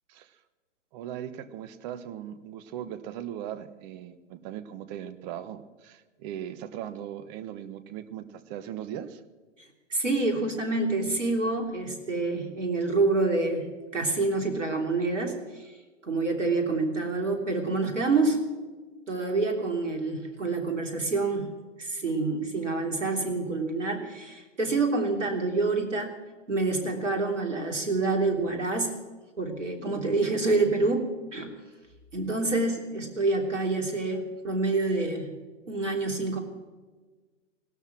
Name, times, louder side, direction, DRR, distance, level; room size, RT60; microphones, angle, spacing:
voice 1, 0.9-9.2, right 10 dB, 35° right, 12 dB, 1.3 m, -39 dB
voice 2, 9.9-13.7 13.9-15.7 16.0-18.4 19.1-26.1 26.5-28.9 29.4-31.5 32.1-35.3 35.7-36.4, right 3 dB, 80° right, 4 dB, 3.3 m, -27 dB
18.0 x 12.5 x 6.1 m, 1.3 s
figure-of-eight pair, 110°, 37 cm